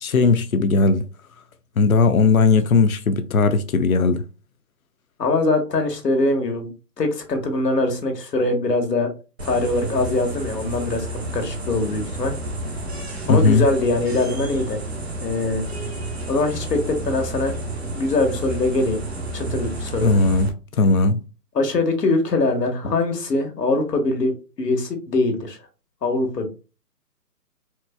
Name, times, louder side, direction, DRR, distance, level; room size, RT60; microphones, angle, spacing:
voice 1, 0.0-1.0 1.8-4.2 13.3-13.6 20.0-20.5 20.8-21.2, left 4 dB, 60° left, 0.6 m, -17 dB
voice 2, 5.2-6.7 7.0-9.1 9.4-11.1 11.3-12.3 13.3-14.8 15.2-15.6 16.3-17.5 17.8-19.0 19.3-20.1 21.5-25.6 26.0-26.5, left 2 dB, 80° left, 1.4 m, -22 dB
sound 1, 9.4-20.5, right 1 dB, 40° right, 0.6 m, -31 dB
4.4 x 2.5 x 2.2 m
hypercardioid pair, 175°, 48 cm